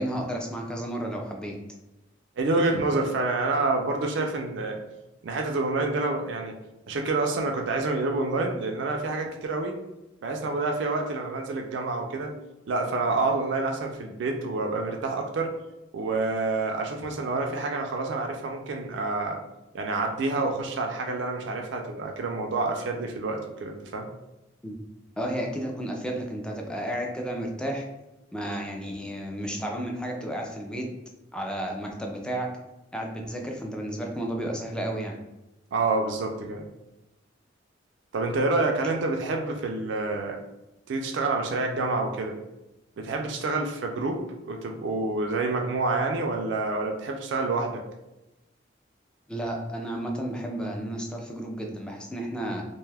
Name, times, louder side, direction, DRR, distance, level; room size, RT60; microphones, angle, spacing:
voice 1, 0.0-1.6 24.6-24.8 25.2-27.8 28.3-30.9 31.3-32.5 32.9-35.2 49.3-52.6, right 1 dB, 5° left, 0 dB, 0.3 m, -32 dB
voice 2, 2.4-4.8 5.2-6.5 6.9-9.7 10.2-12.3 12.7-15.5 15.9-19.4 19.7-24.1 35.7-36.6 38.1-40.4 40.9-42.3 43.0-47.8, right 3 dB, 65° right, 2 dB, 0.4 m, -28 dB
2.6 x 2.2 x 3.3 m, 0.96 s
head